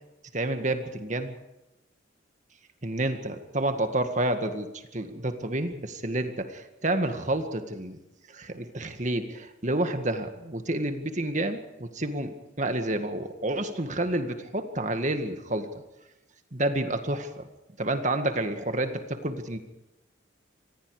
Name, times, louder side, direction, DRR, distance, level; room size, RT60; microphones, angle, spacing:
voice 1, 0.3-1.3 2.8-4.7 4.9-8.0 8.3-15.7 16.5-17.4 17.8-19.6, right 1 dB, 35° right, 8 dB, 2.0 m, -29 dB
26.5 x 20.0 x 5.0 m, 0.96 s
head